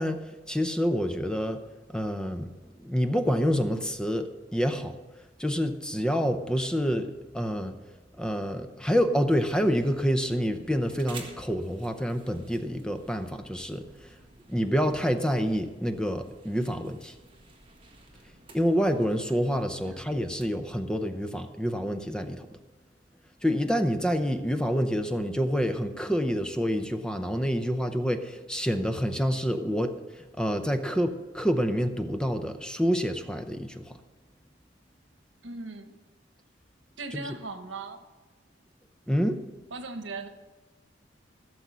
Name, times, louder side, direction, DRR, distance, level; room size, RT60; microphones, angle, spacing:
voice 1, 0.0-1.6 1.9-2.5 2.8-5.0 5.4-7.7 8.2-14.2 14.5-17.1 18.5-22.5 23.4-34.0 37.1-37.2 39.1-39.4, equal, 5° left, 7 dB, 0.6 m, -27 dB
sound 1, 9.4-20.5, right 3 dB, 30° right, 1.6 m, -52 dB
voice 2, 35.4-36.0 37.0-38.0 39.7-40.3, right 3 dB, 90° right, 8 dB, 1.2 m, -38 dB
16.0 x 7.0 x 6.2 m, 1.2 s
head